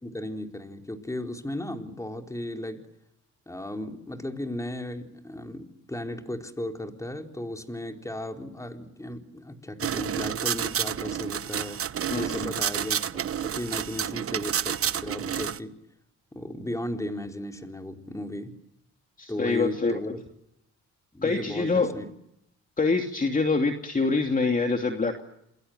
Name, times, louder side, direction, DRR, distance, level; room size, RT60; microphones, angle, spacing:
voice 1, 0.0-2.9 3.5-11.8 12.1-15.7 16.3-18.6 19.3-20.2 21.1-22.1, left 1 dB, 10° left, 4 dB, 4.2 m, -35 dB
sound 1, 9.8-15.6, right 9 dB, 50° right, 1.2 m, -30 dB
voice 2, 19.2-20.0 21.2-22.0 22.8-25.2, left 3 dB, 25° left, 4 dB, 2.7 m, -25 dB
28.5 x 21.0 x 8.0 m, 0.81 s
cardioid pair, 90°, 30 cm